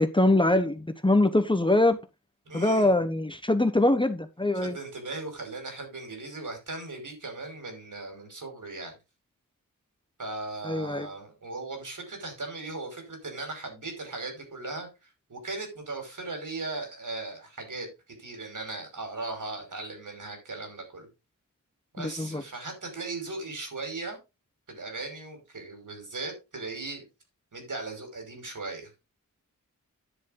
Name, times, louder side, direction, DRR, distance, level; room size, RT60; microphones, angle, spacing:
voice 1, 0.0-2.0 2.5-4.8 10.6-11.1 22.0-22.4, left 1 dB, 15° left, 1.1 m, -23 dB
voice 2, 2.5-3.0 4.6-9.0 10.2-17.9 18.2-21.1 21.9-24.2 24.7-27.0 27.5-28.9, right 3 dB, 65° right, 5.5 m, -38 dB
10.5 x 7.3 x 3.8 m
wide cardioid pair, 70°, 33 cm